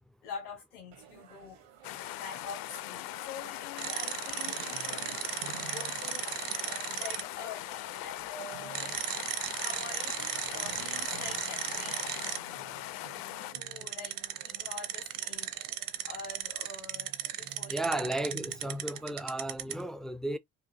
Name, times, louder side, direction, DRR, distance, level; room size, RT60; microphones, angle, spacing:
voice 1, 0.2-1.6 2.1-5.1 5.7-6.3 6.9-9.0 9.6-10.2 10.5-12.1 13.5-15.5 16.0-18.0, left 5 dB, 80° left, 1.3 m, -45 dB
sound 1, 0.9-19.1, right 8 dB, 65° right, 1.4 m, -52 dB
sound 2, 1.8-13.5, left 16 dB, 55° left, 0.5 m, -40 dB
Spinning reel, 3.8-7.2 8.7-12.4 13.5-19.8, right 11 dB, 50° right, 0.8 m, -36 dB
voice 2, 17.7-20.4, right 1 dB, ahead, 0.3 m, -34 dB
4.9 x 2.7 x 2.6 m
hypercardioid pair, 60°, 44 cm